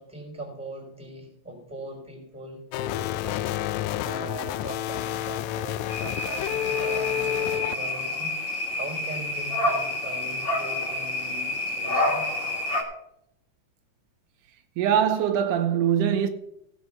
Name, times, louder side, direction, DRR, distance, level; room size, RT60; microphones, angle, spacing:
voice 1, 0.0-12.3, right 2 dB, ahead, 3.7 m, -40 dB
sound 1, 2.7-7.7, left 12 dB, 80° left, 1.8 m, -29 dB
sound 2, 5.9-12.8, left 2 dB, 25° left, 1.4 m, -28 dB
voice 2, 14.8-16.3, right 9 dB, 85° right, 2.4 m, -22 dB
16.0 x 6.4 x 5.6 m
omnidirectional pair, 3.7 m